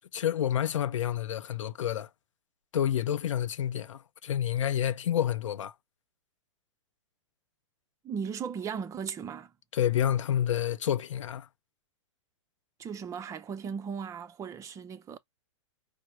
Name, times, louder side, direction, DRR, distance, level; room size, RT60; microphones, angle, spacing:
voice 1, 0.1-2.1 2.7-5.7 9.7-11.5, left 10 dB, 70° left, 0.5 m, -29 dB
voice 2, 8.0-9.5 12.8-15.2, right 6 dB, 20° right, 0.6 m, -37 dB
4.8 x 2.0 x 4.6 m
hypercardioid pair, 115°, 16 cm